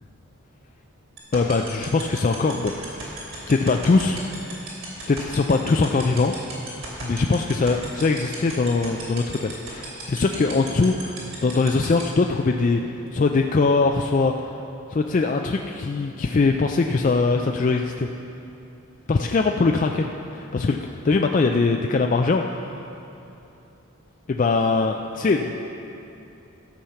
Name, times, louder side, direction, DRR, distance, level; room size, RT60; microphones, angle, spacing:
sound 1, 1.2-12.0, right 5 dB, 60° right, 3.0 m, -35 dB
voice 1, 1.3-2.7 3.2-4.2 5.1-6.3 7.0-12.8 13.1-14.6 14.9-18.1 19.1-20.8 21.0-22.4 24.3-25.6, left 3 dB, 35° left, 3 dB, 0.3 m, -22 dB
13.0 x 7.1 x 5.7 m, 2.8 s
head